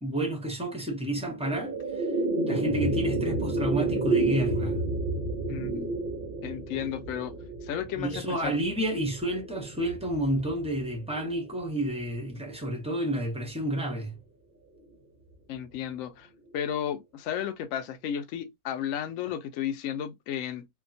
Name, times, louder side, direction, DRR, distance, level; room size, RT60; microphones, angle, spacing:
voice 1, 0.0-2.1 2.5-4.8 8.0-14.2, right 1 dB, 10° right, 0.4 m, -30 dB
sound 1, 1.1-11.6, right 2 dB, 60° right, 0.5 m, -31 dB
voice 2, 5.5-5.9 6.4-7.4 7.6-8.6 15.5-20.7, left 9 dB, 65° left, 0.8 m, -33 dB
2.8 x 2.2 x 2.6 m
omnidirectional pair, 1.8 m